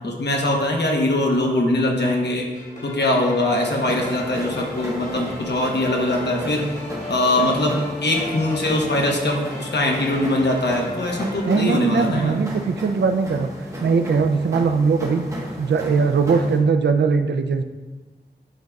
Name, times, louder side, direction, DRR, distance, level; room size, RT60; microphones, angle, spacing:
voice 1, 0.0-2.5 2.8-6.6 7.1-12.4, left 1 dB, 75° left, 1 dB, 1.1 m, -22 dB
sound 1, 2.5-11.7, left 2 dB, 45° left, 1.7 m, -36 dB
sound 2, 3.9-16.6, equal, 15° right, 1.2 m, -35 dB
voice 2, 11.4-13.5 13.8-15.3 15.6-17.6, right 5 dB, 85° right, 8 dB, 0.4 m, -20 dB
9.0 x 5.2 x 2.3 m, 1.3 s
wide cardioid pair, 90°, 18 cm